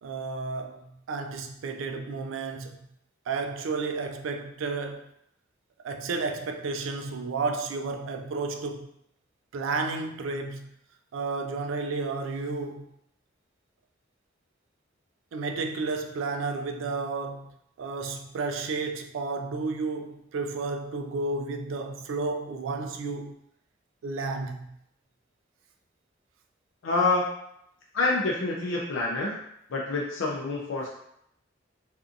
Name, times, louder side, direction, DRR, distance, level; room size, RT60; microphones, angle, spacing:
voice 1, 0.0-2.8 3.3-5.1 5.8-8.9 9.5-10.7 11.1-12.8 15.3-17.5 17.8-23.3 24.0-24.7, right 3 dB, 85° right, 0.3 m, -32 dB
voice 2, 26.8-27.3 27.9-29.4 29.7-30.9, left 3 dB, 85° left, 0.4 m, -27 dB
2.6 x 2.4 x 2.5 m
head